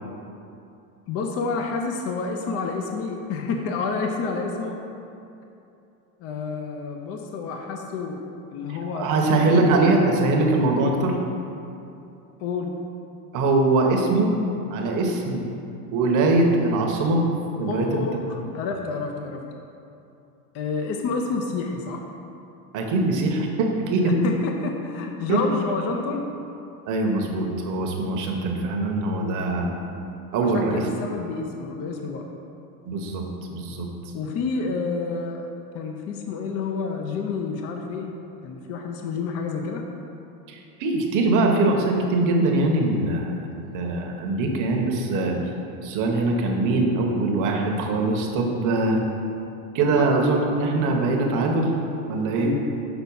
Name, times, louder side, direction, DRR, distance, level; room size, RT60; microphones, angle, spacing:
voice 1, 1.1-4.8 6.2-8.2 8.5-9.8 12.4-12.8 17.7-19.5 20.5-22.1 23.9-26.2 29.1-29.4 30.4-32.2 34.1-35.5 35.7-38.1 38.4-39.8 49.9-50.1 52.4-52.6, left 4 dB, 30° left, 2 dB, 0.5 m, -29 dB
voice 2, 8.9-11.2 13.3-14.3 14.7-15.5 15.9-17.2 17.6-18.1 22.7-24.1 25.3-25.4 26.9-29.7 30.3-30.9 32.9-33.2 33.5-33.9 40.5-45.4 45.8-49.0 49.7-51.7 52.1-52.6, right 2 dB, 40° right, 1 dB, 1.0 m, -22 dB
6.1 x 4.0 x 5.4 m, 2.7 s
supercardioid pair, 120°, 47 cm